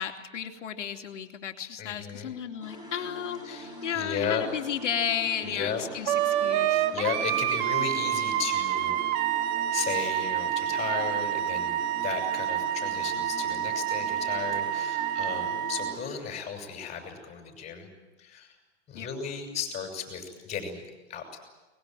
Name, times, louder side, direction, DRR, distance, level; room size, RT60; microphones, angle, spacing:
voice 1, 0.0-6.9 18.9-19.1, left 9 dB, 80° left, 4 dB, 2.8 m, -33 dB
voice 2, 1.8-2.3 3.4-4.4 5.4-5.8 6.9-9.3 9.7-17.9 18.2-18.5 18.9-21.4, left 6 dB, 20° left, 4 dB, 6.3 m, -35 dB
sound 1, 2.6-16.2, equal, 10° right, 5.1 m, -43 dB
Wind instrument woodwind instrument, 6.1-15.9, right 12 dB, 35° right, 1.2 m, -28 dB
23.5 x 21.0 x 9.1 m, 1.2 s
hypercardioid pair, 140°, 36 cm